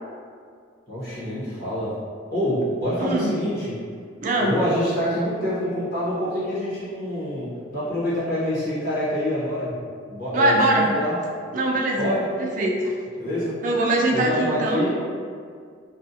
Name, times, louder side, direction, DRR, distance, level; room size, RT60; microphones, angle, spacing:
voice 1, 0.9-1.9 2.3-3.7 4.4-9.7 10.1-11.1 12.0-12.2 13.2-13.5 14.1-14.9, equal, 50° left, -10 dB, 0.9 m, -26 dB
voice 2, 3.0-3.3 4.2-4.5 10.3-10.9 11.5-12.1 12.4-12.9 13.6-14.8, right 1 dB, 40° right, -1 dB, 0.3 m, -22 dB
2.4 x 2.3 x 2.7 m, 2.1 s
head